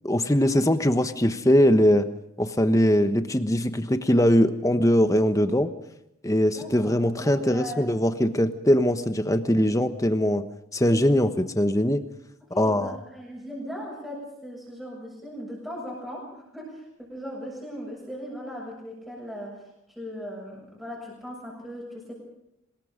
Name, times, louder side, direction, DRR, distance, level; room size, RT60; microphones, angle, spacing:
voice 1, 0.0-2.1 2.4-5.7 6.2-10.4 10.7-12.0 12.6-13.0, equal, 15° left, 9 dB, 1.1 m, -21 dB
voice 2, 6.5-7.9 9.5-9.7 12.5-16.8 17.1-19.6 19.9-22.1, equal, ahead, -4 dB, 7.1 m, -38 dB
26.0 x 21.0 x 5.2 m, 0.81 s
head